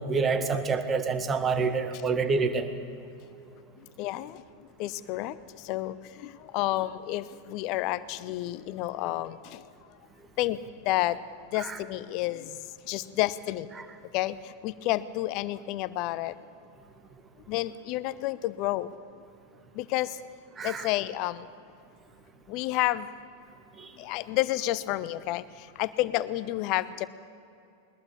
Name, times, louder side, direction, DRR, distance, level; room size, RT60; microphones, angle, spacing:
voice 1, 0.0-2.7 11.6-11.8 20.6-20.9 23.8-23.9, right 4 dB, 20° right, 10 dB, 1.7 m, -27 dB
voice 2, 3.8-9.7 10.4-11.2 11.5-13.7 14.1-16.4 17.5-18.9 19.7-20.2 20.6-21.5 22.5-23.1 24.0-27.1, left 16 dB, 40° left, 17 dB, 0.9 m, -30 dB
21.0 x 21.0 x 8.7 m, 2.6 s
figure-of-eight pair, 90°, 0 cm